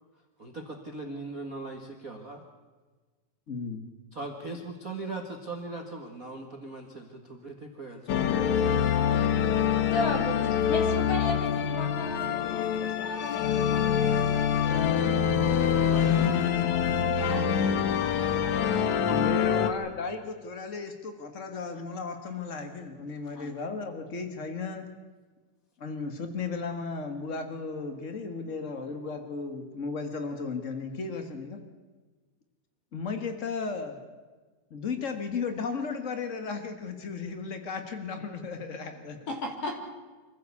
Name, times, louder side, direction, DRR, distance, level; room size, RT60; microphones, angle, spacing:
voice 1, 0.4-2.4 4.1-8.9 15.8-16.1 18.6-19.3 28.4-28.5, right 2 dB, 35° right, 3 dB, 1.4 m, -40 dB
voice 2, 3.5-3.8 19.1-24.9 25.8-31.6 32.9-34.0 34.7-39.2, left 4 dB, 85° left, 7 dB, 0.6 m, -35 dB
sound 1, 8.1-19.7, left 8 dB, 60° left, 2.3 m, -25 dB
voice 3, 9.8-14.5 16.7-19.2 23.3-23.5 39.3-39.7, left 2 dB, 40° left, 2 dB, 4.2 m, -36 dB
26.0 x 15.5 x 8.4 m, 1.3 s
omnidirectional pair, 4.2 m